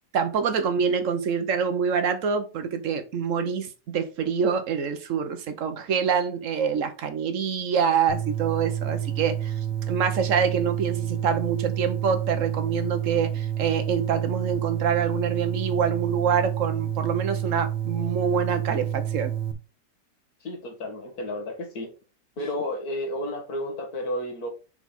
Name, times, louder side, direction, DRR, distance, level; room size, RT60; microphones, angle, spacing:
voice 1, 0.1-9.5 9.9-19.3, right 6 dB, 55° right, 1.0 m, -26 dB
sound 1, 8.1-19.5, right 10 dB, 85° right, 1.5 m, -29 dB
voice 2, 20.4-21.9 22.4-24.5, left 1 dB, 60° left, 2.1 m, -32 dB
5.7 x 4.6 x 4.1 m
omnidirectional pair, 1.9 m